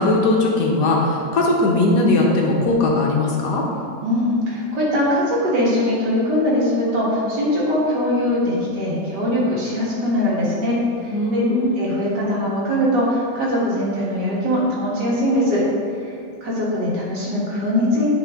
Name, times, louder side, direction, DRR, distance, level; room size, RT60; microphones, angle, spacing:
voice 1, 0.0-3.6 11.1-11.8, left 2 dB, 65° left, -2 dB, 1.4 m, -19 dB
voice 2, 4.0-15.6 16.0-16.1 16.4-18.1, left 1 dB, 65° right, -6 dB, 2.1 m, -21 dB
9.9 x 3.8 x 3.5 m, 2.5 s
omnidirectional pair, 2.0 m